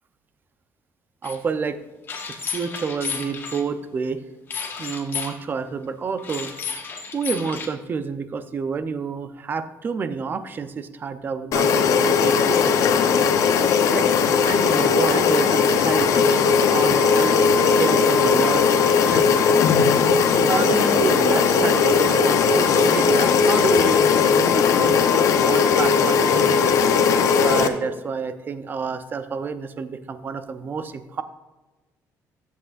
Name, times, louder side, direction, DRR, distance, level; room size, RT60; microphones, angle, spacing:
sound 1, 1.2-1.4 2.1-3.6 4.5-5.4 6.2-7.7, left 6 dB, 35° left, 1.4 m, -32 dB
voice 1, 1.2-1.8 2.3-4.2 4.8-6.5 7.1-12.8 13.9-17.4 17.8-19.6 20.5-26.7 27.4-31.2, right 5 dB, 35° right, 11 dB, 0.6 m, -29 dB
sound 2, 11.5-27.7, left 6 dB, 60° left, 0.8 m, -18 dB
14.0 x 8.2 x 2.5 m, 1.2 s
cardioid pair, 145°, 6 cm